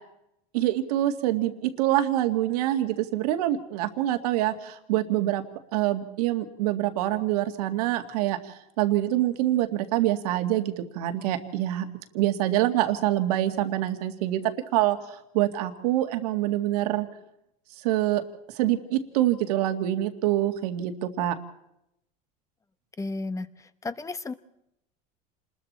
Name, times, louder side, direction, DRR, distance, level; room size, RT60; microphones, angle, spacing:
voice 1, 0.5-5.4 5.7-11.9 12.1-14.4 14.7-17.1 17.8-18.2 18.6-21.3, right 14 dB, 85° right, 7 dB, 2.1 m, -25 dB
voice 2, 23.0-24.3, left 3 dB, 15° left, 13 dB, 1.1 m, -33 dB
28.5 x 21.0 x 4.3 m, 0.82 s
supercardioid pair, 125°, 19 cm